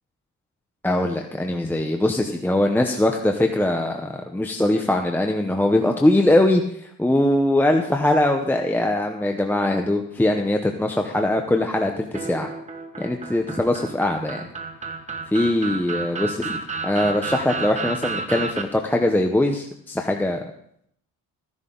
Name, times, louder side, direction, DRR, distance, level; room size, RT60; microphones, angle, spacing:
voice 1, 0.8-12.5 13.0-14.5 15.3-16.5 16.8-20.4, left 1 dB, 5° left, 3 dB, 0.8 m, -21 dB
sound 1, 12.1-18.6, right 4 dB, 20° right, 1.3 m, -31 dB
14.5 x 11.0 x 3.8 m, 0.69 s
cardioid pair, 145°, 32 cm